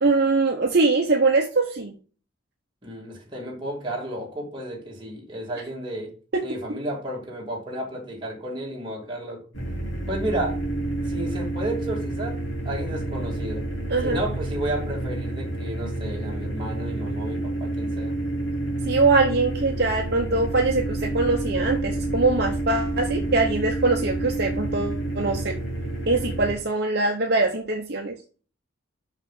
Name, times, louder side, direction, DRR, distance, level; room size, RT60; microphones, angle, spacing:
voice 1, 0.0-1.9 13.9-14.2 18.9-25.5 26.1-28.1, right 3 dB, 50° right, 0.9 m, -22 dB
voice 2, 2.8-6.1 6.4-9.4 10.1-10.6 11.0-13.7 14.0-18.1, right 1 dB, 25° right, 2.4 m, -32 dB
sound 1, 9.5-26.5, right 1 dB, 70° left, 3.9 m, -29 dB
6.1 x 5.6 x 5.5 m
head